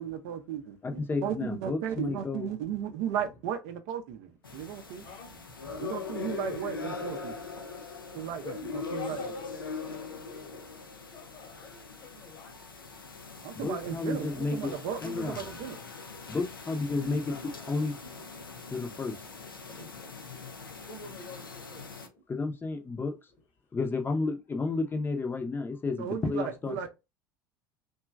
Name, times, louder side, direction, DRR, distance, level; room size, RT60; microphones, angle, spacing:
voice 1, 0.0-5.0 5.8-7.3 8.1-8.4 8.7-9.2 13.4-15.8 26.0-26.9, right 9 dB, 55° right, 0.5 m, -35 dB
voice 2, 0.8-2.5 13.5-14.7 15.0-15.4 16.3-17.3 17.7-17.9 18.7-19.1 22.3-23.1 23.7-26.9, left 3 dB, 20° left, 0.7 m, -31 dB
sound 1, 4.4-22.1, left 4 dB, 85° left, 0.4 m, -41 dB
voice 3, 4.5-5.8 6.3-6.7 7.6-10.8 11.1-12.6 13.4-16.4 18.3-18.7 19.7-20.4 20.6-22.2 22.9-23.1 24.6-24.8, left 3 dB, 50° left, 1.0 m, -49 dB
2.9 x 2.3 x 2.3 m
figure-of-eight pair, 70°, 11 cm